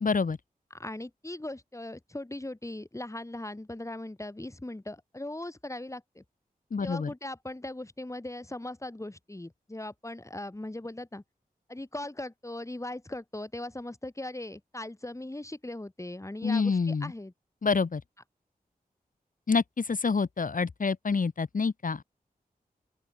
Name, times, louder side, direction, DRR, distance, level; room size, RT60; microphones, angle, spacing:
voice 1, 0.0-0.4 6.7-7.1 16.4-17.1 17.6-18.0 19.5-22.0, left 4 dB, 60° left, 2.1 m, -27 dB
voice 2, 0.7-6.2 6.8-11.2 11.7-17.3, left 1 dB, 20° left, 4.7 m, -39 dB
open air
wide cardioid pair, 70°, 16 cm